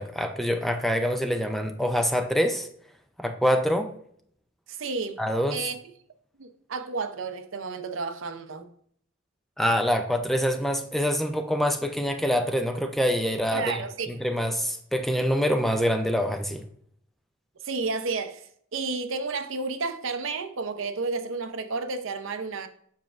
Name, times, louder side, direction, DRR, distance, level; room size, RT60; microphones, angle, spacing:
voice 1, 0.0-2.7 3.2-3.9 5.2-5.6 9.6-13.8 14.1-16.6, equal, ahead, 0.5 m, -25 dB
voice 2, 4.7-5.2 5.5-5.8 6.4-8.7 13.5-14.1 17.6-22.7, right 4 dB, 70° right, 0.7 m, -31 dB
7.2 x 5.9 x 2.5 m
head